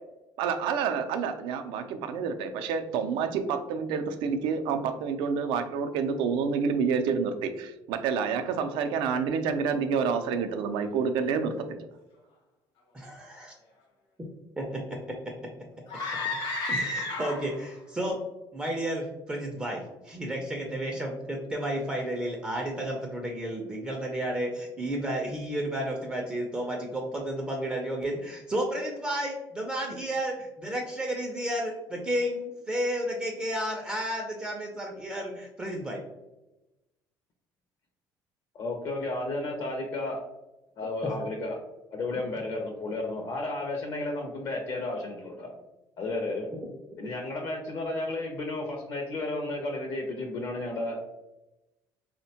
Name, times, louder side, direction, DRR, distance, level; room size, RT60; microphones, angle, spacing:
voice 1, 0.4-11.8, right 6 dB, 85° right, 8 dB, 0.3 m, -28 dB
voice 2, 12.9-13.5 14.6-15.1 16.7-18.2 18.5-36.0, right 1 dB, 10° right, 0 dB, 0.3 m, -32 dB
sound 1, 15.9-17.7, left 2 dB, 70° left, 0.9 m, -31 dB
voice 3, 38.5-40.2 40.8-41.6 41.9-45.5 46.0-46.5 47.0-51.0, left 2 dB, 50° left, 1 dB, 0.5 m, -32 dB
3.4 x 2.1 x 2.7 m, 0.98 s
cardioid pair, 145°, 8 cm